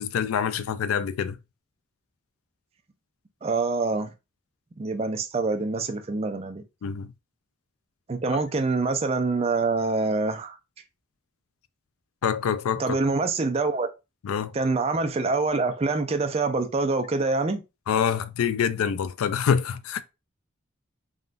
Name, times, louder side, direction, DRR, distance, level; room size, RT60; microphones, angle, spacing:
voice 1, 0.0-1.4 6.8-7.1 12.2-13.0 14.2-14.5 17.9-20.0, left 7 dB, 85° left, 0.3 m, -26 dB
voice 2, 3.4-4.1 4.8-6.6 8.1-10.6 12.8-13.9 14.5-17.6, right 3 dB, 30° right, 0.4 m, -25 dB
3.6 x 2.2 x 2.5 m
head